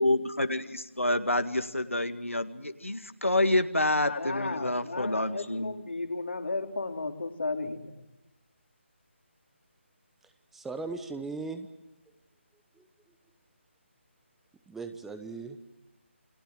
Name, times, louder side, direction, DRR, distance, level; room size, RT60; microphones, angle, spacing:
voice 1, 0.0-5.7, left 1 dB, 85° left, 9 dB, 2.0 m, -28 dB
voice 2, 4.0-7.9, left 3 dB, 60° left, 5 dB, 3.2 m, -34 dB
voice 3, 10.2-11.7 12.8-12.9 14.7-15.6, right 3 dB, 5° right, 9 dB, 1.0 m, -38 dB
29.5 x 22.5 x 7.8 m, 1.1 s
figure-of-eight pair, 155°, 7 cm